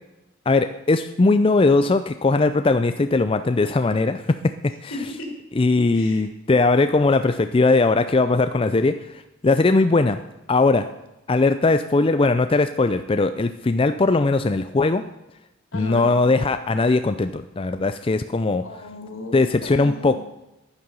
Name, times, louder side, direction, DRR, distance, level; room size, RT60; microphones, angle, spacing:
voice 1, 0.5-4.4 4.8-4.9 5.6-10.2 10.5-10.9 11.3-15.0 15.7-18.6 19.3-20.2, left 3 dB, 25° left, 10 dB, 0.4 m, -19 dB
voice 2, 4.9-5.3 5.9-6.2 15.7-16.1 18.6-19.3 19.6-20.2, left 2 dB, 80° left, 2 dB, 3.3 m, -34 dB
10.5 x 9.4 x 6.9 m, 0.95 s
head